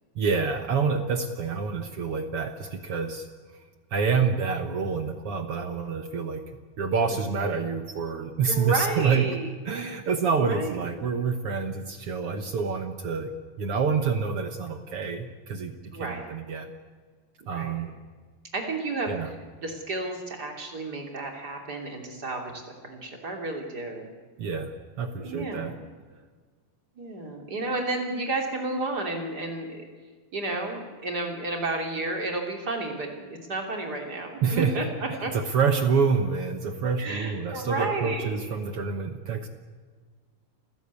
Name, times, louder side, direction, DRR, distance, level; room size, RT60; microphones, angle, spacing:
voice 1, 0.1-3.3 3.9-6.4 6.8-9.2 9.6-16.7 17.5-17.9 19.1-19.3 24.4-25.7 34.4-39.5, right 5 dB, 60° right, 7 dB, 1.5 m, -27 dB
voice 2, 8.4-9.5 10.4-10.8 15.9-16.3 17.4-17.9 18.5-19.1 19.6-22.5 22.8-24.1 25.2-25.8 26.9-29.9 30.3-34.8 35.2-35.3 37.0-38.5, right 2 dB, 30° right, 2 dB, 3.3 m, -32 dB
28.0 x 15.5 x 8.4 m, 1.5 s
omnidirectional pair, 4.1 m